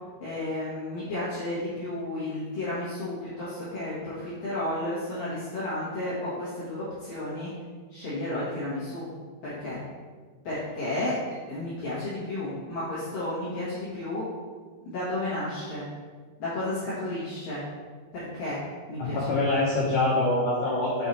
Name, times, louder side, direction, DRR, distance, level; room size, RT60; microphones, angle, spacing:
voice 1, 0.2-7.5 7.9-9.1 9.4-9.8 10.4-11.2 11.5-14.3 14.9-15.8 16.4-17.6 18.1-18.6 18.9-19.2 19.5-19.6, left 1 dB, 55° left, -11 dB, 2.9 m, -32 dB
voice 2, 19.0-21.1, left 2 dB, 85° left, -6 dB, 1.8 m, -25 dB
7.7 x 4.7 x 4.4 m, 1.5 s
omnidirectional pair, 5.3 m